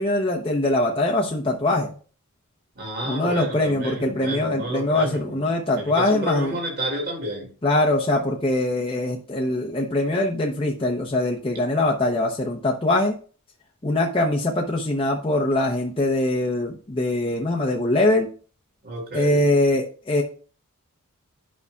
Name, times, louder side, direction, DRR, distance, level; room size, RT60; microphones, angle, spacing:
voice 1, 0.0-1.9 3.0-6.6 7.6-13.2 13.8-18.3 19.1-20.2, left 2 dB, 25° left, 0.9 m, -22 dB
voice 2, 2.7-5.5 5.8-7.5 18.8-19.4, right 1 dB, 45° right, 3.2 m, -30 dB
11.0 x 5.7 x 2.4 m
head